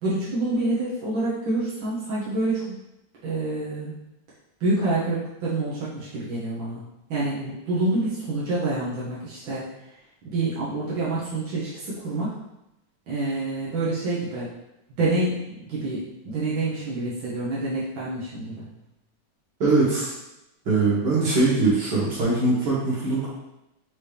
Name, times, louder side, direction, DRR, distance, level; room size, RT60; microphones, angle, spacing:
voice 1, 0.0-2.8 3.2-3.9 4.6-6.8 7.1-12.4 13.1-14.5 15.0-18.7, right 2 dB, 90° right, -8 dB, 1.8 m, -27 dB
voice 2, 19.6-20.1 20.7-23.3, right 3 dB, 65° right, -7 dB, 2.2 m, -21 dB
5.3 x 2.9 x 3.3 m, 0.89 s
omnidirectional pair, 2.0 m